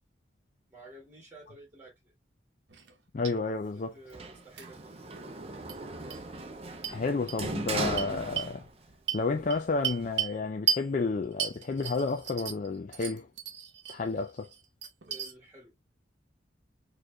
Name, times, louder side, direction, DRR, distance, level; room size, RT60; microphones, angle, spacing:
voice 1, 0.7-2.1 3.7-5.2 15.1-15.7, right 1 dB, 10° right, 1.8 m, -52 dB
sound 1, 2.7-2.9 3.2-3.3 4.6-4.7 5.7-5.8 6.1-6.2 6.8-7.0 7.3-7.4 8.0-8.5 9.1-10.4 10.7-10.9 11.4-12.7 12.9-14.0 14.4-15.3, right 9 dB, 70° right, 0.9 m, -33 dB
voice 2, 3.1-3.9 6.9-8.7 9.1-13.3 13.9-14.5, left 3 dB, 45° left, 0.4 m, -31 dB
Sliding door, 4.1-8.9 9.3-10.2, right 3 dB, 35° right, 0.6 m, -38 dB
4.4 x 3.1 x 2.2 m
head